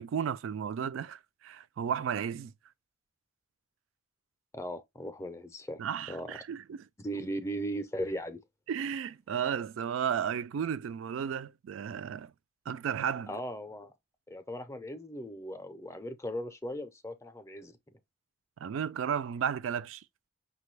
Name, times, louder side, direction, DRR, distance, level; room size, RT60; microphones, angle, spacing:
voice 1, 0.0-2.5 5.8-6.8 8.7-12.3 12.7-13.3 18.6-20.0, right 8 dB, 80° right, 0.3 m, -33 dB
voice 2, 4.5-5.8 6.1-6.4 7.0-8.4 13.3-13.9 14.3-17.8, equal, 15° left, 0.5 m, -38 dB
5.8 x 2.2 x 3.1 m
head